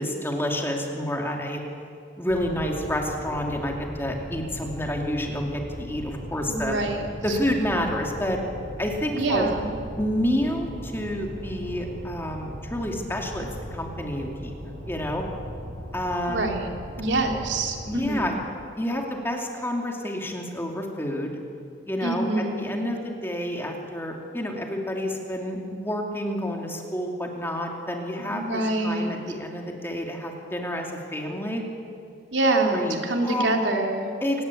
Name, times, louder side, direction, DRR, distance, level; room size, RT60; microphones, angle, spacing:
voice 1, 0.0-1.6 2.2-6.8 7.2-8.4 8.8-9.5 10.0-14.5 14.9-15.2 15.9-16.6 17.9-18.4 18.8-21.3 21.9-31.6 32.7-33.0 33.2-33.5 34.2-34.4, equal, 10° left, 1 dB, 2.6 m, -29 dB
sound 1, 2.3-18.3, equal, 85° right, 4.0 m, -38 dB
voice 2, 6.5-7.0 9.1-9.8 16.3-16.7 17.0-18.3 22.0-22.7 28.3-29.1 32.3-34.1, right 2 dB, 70° right, 2 dB, 3.2 m, -25 dB
28.0 x 19.0 x 8.5 m, 2.5 s
head